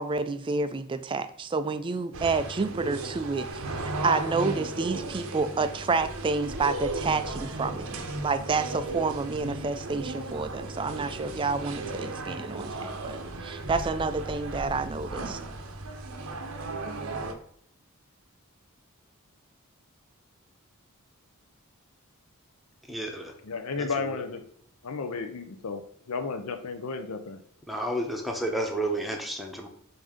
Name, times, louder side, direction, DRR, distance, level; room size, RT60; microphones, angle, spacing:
voice 1, 0.0-8.0 8.2-15.4, right 4 dB, 20° right, 11 dB, 0.3 m, -29 dB
sound 1, 2.1-17.3, right 2 dB, 65° right, 0.7 m, -35 dB
voice 2, 22.9-23.3 23.8-24.2 27.7-29.7, right 1 dB, ahead, 2 dB, 0.8 m, -31 dB
voice 3, 23.4-24.4 24.8-27.4, left 4 dB, 75° left, 7 dB, 0.6 m, -33 dB
7.0 x 2.7 x 4.9 m, 0.67 s
head